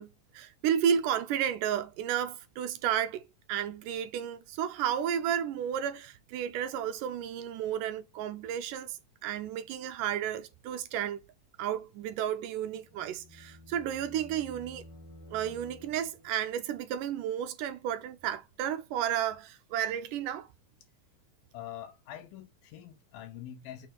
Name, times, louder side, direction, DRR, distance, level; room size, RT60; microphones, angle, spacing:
voice 1, 0.0-3.2 3.5-11.2 11.6-14.8 15.3-20.5, right 9 dB, 80° right, 2.1 m, -32 dB
sound 1, 12.6-16.5, left 1 dB, 45° left, 1.8 m, -52 dB
voice 2, 21.5-23.9, left 11 dB, 85° left, 2.9 m, -44 dB
6.1 x 4.4 x 3.9 m
omnidirectional pair, 4.1 m